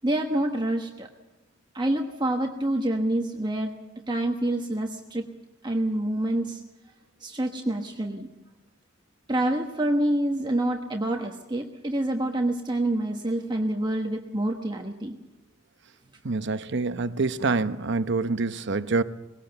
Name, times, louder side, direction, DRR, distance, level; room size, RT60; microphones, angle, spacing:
voice 1, 0.0-1.1 1.7-3.7 4.1-5.2 5.6-6.6 7.2-8.3 9.3-15.2, right 1 dB, 20° right, 1.2 m, -27 dB
voice 2, 16.2-19.0, right 3 dB, 60° right, 0.9 m, -26 dB
20.0 x 17.5 x 7.9 m
head